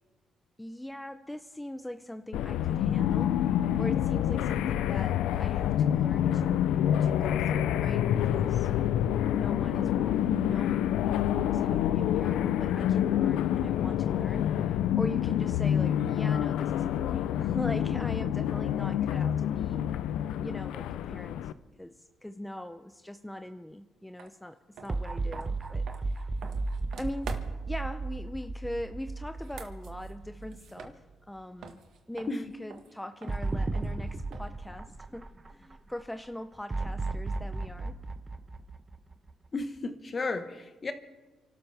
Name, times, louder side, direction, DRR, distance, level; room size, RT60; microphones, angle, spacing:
voice 1, 0.6-3.4 3.8-6.6 7.0-8.7 9.3-19.8 20.4-21.4 21.8-26.3 27.0-31.8 32.1-38.0, left 1 dB, 5° left, 8 dB, 0.6 m, -41 dB
sound 1, 2.3-21.5, left 10 dB, 90° left, 0.5 m, -27 dB
sound 2, 24.2-24.3 24.7-27.8 29.3-31.3 31.6-34.7, right 5 dB, 75° right, 1.6 m, -46 dB
sound 3, 24.9-31.2 31.6-31.7 33.3-35.7 36.7-39.5, right 3 dB, 25° right, 1.0 m, -35 dB
voice 2, 39.5-40.9, left 3 dB, 35° left, 9 dB, 1.4 m, -33 dB
29.5 x 12.5 x 3.5 m, 1.2 s
cardioid pair, 90°, 0 cm